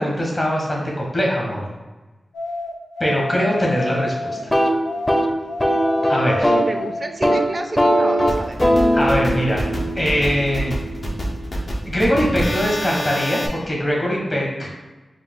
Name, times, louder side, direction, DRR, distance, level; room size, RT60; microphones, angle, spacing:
voice 1, 0.0-1.7 3.0-4.5 6.1-6.5 8.9-9.6 9.9-10.7 11.9-14.7, equal, 40° left, -3 dB, 1.3 m, -21 dB
sound 1, 2.3-4.5 4.8-7.1, left 2 dB, 85° left, 0.4 m, -29 dB
sound 2, 4.4-6.8 7.1-7.4 7.8-11.6, equal, 15° left, 0.6 m, -20 dB
voice 2, 6.5-8.6, right 2 dB, 45° right, 6 dB, 0.4 m, -30 dB
sound 3, 8.3-13.5, equal, 60° left, 0.9 m, -27 dB
4.7 x 2.3 x 3.7 m, 1.1 s
cardioid pair, 40°, 0 cm